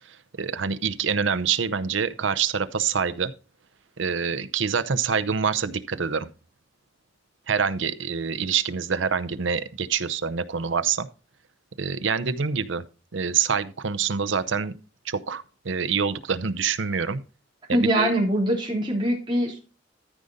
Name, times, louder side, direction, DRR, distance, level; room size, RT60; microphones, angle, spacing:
voice 1, 0.1-3.3 4.0-6.3 7.5-11.1 11.8-12.8 13.1-14.7 15.0-17.2 17.7-18.1, right 6 dB, 70° right, 0.7 m, -26 dB
voice 2, 17.7-19.6, equal, 25° right, 3.2 m, -23 dB
13.5 x 5.1 x 4.1 m
head